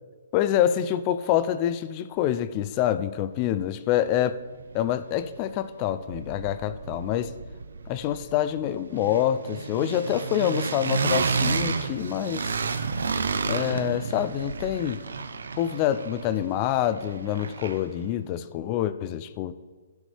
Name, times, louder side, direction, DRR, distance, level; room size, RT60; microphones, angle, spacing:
voice 1, 0.3-4.4 4.7-7.3 7.9-12.6 13.4-15.0 15.6-19.5, left 11 dB, 20° left, 13 dB, 0.3 m, -26 dB
sound 1, 4.0-4.1 4.4-5.6 5.8-18.0, right 4 dB, 85° right, 0.8 m, -31 dB
16.0 x 6.3 x 3.3 m, 1.5 s
hypercardioid pair, 175°, 0 cm